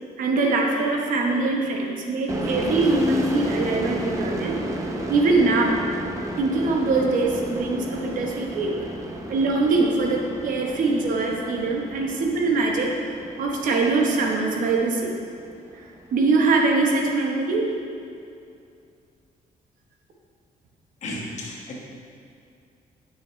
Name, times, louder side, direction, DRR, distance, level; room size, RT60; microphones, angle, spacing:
voice 1, 0.2-4.6 5.1-5.8 6.4-8.8 9.3-15.1 16.1-17.7, right 3 dB, 65° right, 1 dB, 1.0 m, -23 dB
sound 1, 2.3-15.7, right 1 dB, 20° right, 0.6 m, -33 dB
voice 2, 21.0-21.8, left 1 dB, 50° left, -3 dB, 1.3 m, -33 dB
9.1 x 6.1 x 3.2 m, 2.4 s
cardioid pair, 170°, 15 cm